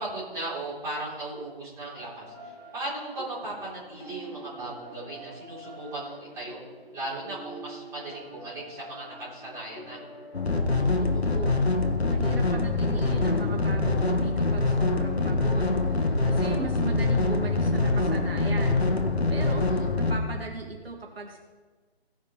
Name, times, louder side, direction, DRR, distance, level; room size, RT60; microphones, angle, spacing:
voice 1, 0.0-6.6 6.9-10.0 19.4-19.5, right 2 dB, 10° right, -9 dB, 3.7 m, -37 dB
sound 1, 1.8-14.1, right 1 dB, 20° left, 2.3 m, -45 dB
sound 2, 10.3-20.2, left 3 dB, 85° left, 1.3 m, -24 dB
voice 2, 11.0-11.7 12.1-18.8 19.3-19.7 19.9-21.4, right 3 dB, 70° right, 0 dB, 2.1 m, -37 dB
16.5 x 5.8 x 4.6 m, 1.4 s
figure-of-eight pair, 145°, 31 cm